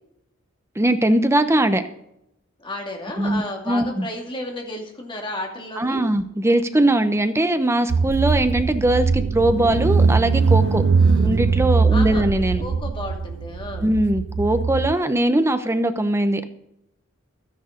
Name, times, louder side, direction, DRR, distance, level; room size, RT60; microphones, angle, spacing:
voice 1, 0.7-1.8 3.2-4.1 5.8-10.8 11.2-12.6 13.8-16.4, right 1 dB, 15° right, 9 dB, 0.9 m, -20 dB
voice 2, 2.6-6.0 10.9-11.4 11.9-12.3 12.6-13.9, left 1 dB, 25° left, 1 dB, 2.6 m, -33 dB
Car / Engine, 7.9-14.9, right 5 dB, 65° right, 0.4 m, -21 dB
13.0 x 10.5 x 5.1 m, 0.78 s
head